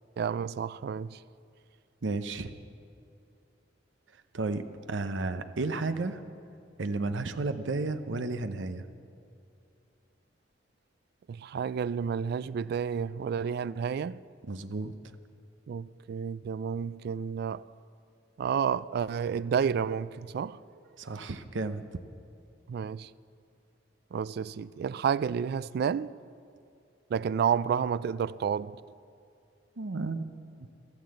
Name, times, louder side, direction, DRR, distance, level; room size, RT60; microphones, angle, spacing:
voice 1, 0.2-1.2 11.3-14.2 15.7-17.7 18.4-20.6 22.7-23.1 24.1-26.2 27.1-28.8, right 7 dB, 60° right, 0.3 m, -30 dB
voice 2, 2.0-2.5 4.3-6.2 6.8-8.8 14.5-14.9 21.0-21.8 29.8-30.4, right 3 dB, 85° right, 0.7 m, -32 dB
13.5 x 13.0 x 7.7 m
head